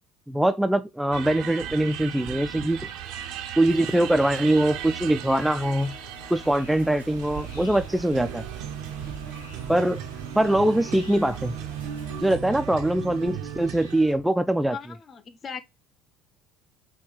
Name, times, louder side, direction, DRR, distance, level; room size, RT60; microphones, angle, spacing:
voice 1, 0.3-2.9 3.6-5.9 6.3-8.4 9.7-10.0 10.4-11.5 12.2-14.8, right 1 dB, 5° right, 0.3 m, -23 dB
sound 1, 1.1-14.1, right 10 dB, 55° right, 0.5 m, -37 dB
sound 2, 1.7-14.2, left 5 dB, 75° left, 1.2 m, -49 dB
sound 3, 3.7-12.4, right 3 dB, 90° right, 1.0 m, -47 dB
voice 2, 14.7-15.6, left 6 dB, 35° left, 0.6 m, -38 dB
5.7 x 2.2 x 3.2 m
figure-of-eight pair, 60°, 0 cm